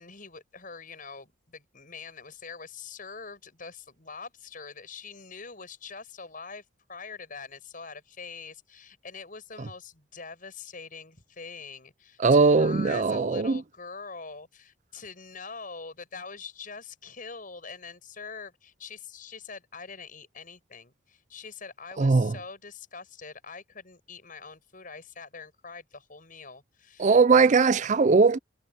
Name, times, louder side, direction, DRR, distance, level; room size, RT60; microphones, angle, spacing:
voice 1, 0.0-27.2, left 5 dB, 45° left, 7.1 m, -44 dB
voice 2, 12.2-13.6 22.0-22.3 27.0-28.4, right 4 dB, 40° right, 0.5 m, -20 dB
head